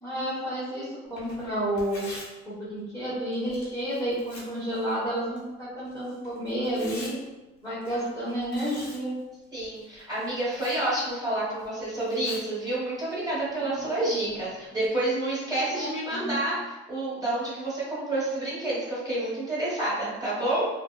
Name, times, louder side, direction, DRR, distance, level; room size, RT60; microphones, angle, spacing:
voice 1, 0.0-2.1 2.5-7.1 7.6-9.1 13.6-13.7 15.7-16.4, equal, 10° left, -11 dB, 1.0 m, -31 dB
Tearing, 1.0-14.9, left 2 dB, 70° left, 0.9 m, -50 dB
voice 2, 9.5-20.7, right 1 dB, 15° right, -9 dB, 1.3 m, -29 dB
2.6 x 2.2 x 2.2 m, 1.1 s
cardioid pair, 90°, 30 cm